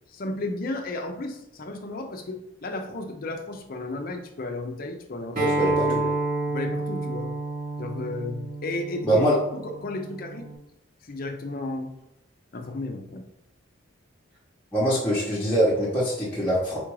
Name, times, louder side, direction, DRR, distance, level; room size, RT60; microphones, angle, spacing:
voice 1, 0.1-5.4 5.9-6.1 6.5-7.3 7.8-9.2 9.5-10.5 11.0-11.9 12.5-13.2, left 2 dB, 45° left, 5 dB, 0.5 m, -33 dB
voice 2, 5.4-5.9 9.0-9.4 14.7-16.8, equal, 10° left, -10 dB, 0.9 m, -23 dB
Acoustic guitar, 5.4-10.6, right 2 dB, 40° right, 1.0 m, -29 dB
3.8 x 2.5 x 4.6 m, 0.83 s
head